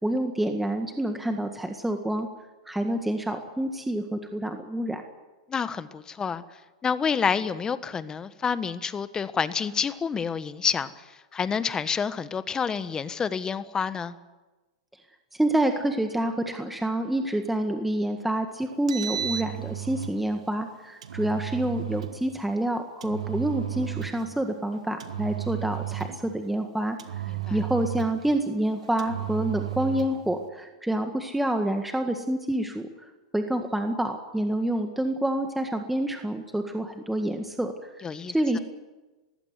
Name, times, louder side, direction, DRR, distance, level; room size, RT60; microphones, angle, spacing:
voice 1, 0.0-2.3 2.6-5.0 15.3-27.0 27.5-32.9 33.3-37.9 38.3-38.6, right 1 dB, 5° right, 5 dB, 1.7 m, -27 dB
voice 2, 5.5-6.4 6.8-14.1 27.3-27.6 38.0-38.3, left 6 dB, 20° left, 13 dB, 1.3 m, -28 dB
Engine, 18.7-20.2 21.0-22.2 23.0-24.3 25.0-26.3 27.0-28.3 29.0-30.2, right 12 dB, 80° right, 1.5 m, -33 dB
20.5 x 16.0 x 9.6 m, 1.2 s
hypercardioid pair, 115°, 4 cm